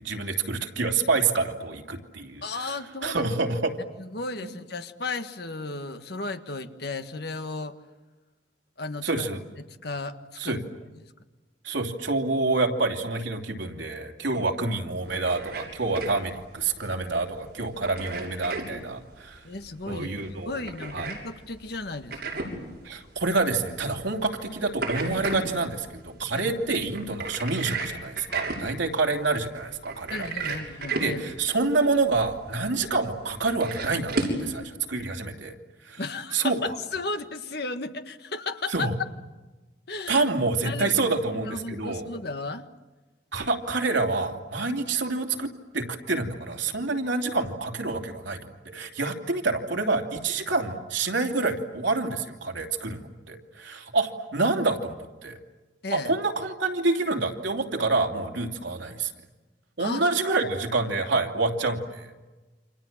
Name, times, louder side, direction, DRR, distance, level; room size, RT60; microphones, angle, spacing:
voice 1, 0.0-2.7 3.0-3.7 4.4-4.5 9.0-9.4 10.4-10.6 11.6-19.4 19.9-20.5 20.9-21.1 22.8-30.6 31.0-35.5 35.8-36.0 36.3-36.6 38.7-38.9 40.1-42.1 43.3-45.5 45.7-54.9 55.2-55.4 55.9-59.1 59.8-62.1, right 3 dB, 85° right, 3 dB, 3.0 m, -27 dB
voice 2, 2.4-3.2 4.0-7.8 8.8-9.3 9.6-10.6 14.4-14.5 19.4-20.1 20.4-22.5 26.3-26.4 30.1-31.2 36.0-38.9 39.9-40.3 40.6-40.9 41.3-42.7 55.8-56.1 59.8-60.1, left 3 dB, 60° left, 7 dB, 1.7 m, -34 dB
sound 1, 15.0-34.5, right 3 dB, 60° right, 6.7 m, -35 dB
29.0 x 26.5 x 7.4 m, 1.2 s
head